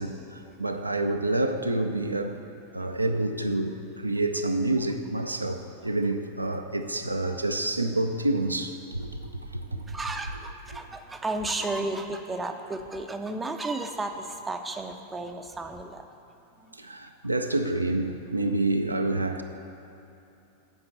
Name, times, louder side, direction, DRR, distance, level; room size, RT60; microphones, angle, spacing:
voice 1, 0.0-2.4 2.7-9.2 9.5-9.9 16.8-19.4, right 2 dB, 85° right, 6 dB, 0.4 m, -28 dB
voice 2, 9.7-16.1 16.6-16.7, right 2 dB, 10° right, 5 dB, 0.6 m, -33 dB
7.7 x 5.2 x 7.1 m, 2.9 s
figure-of-eight pair, 90°, 0 cm